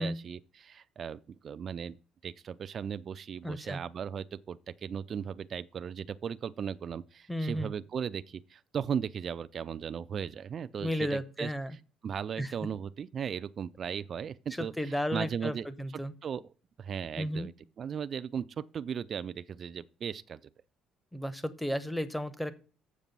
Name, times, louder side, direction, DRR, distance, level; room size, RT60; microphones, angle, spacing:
voice 1, 0.0-2.0 2.2-11.8 12.0-15.7 16.2-16.5 16.8-20.4, right 7 dB, 45° right, 0.4 m, -37 dB
voice 2, 3.4-3.8 7.3-7.7 10.8-11.7 12.4-12.5 14.6-16.1 17.1-17.5 21.1-22.5, equal, 5° left, 0.8 m, -33 dB
7.4 x 6.6 x 5.3 m
cardioid pair, 115°, 0 cm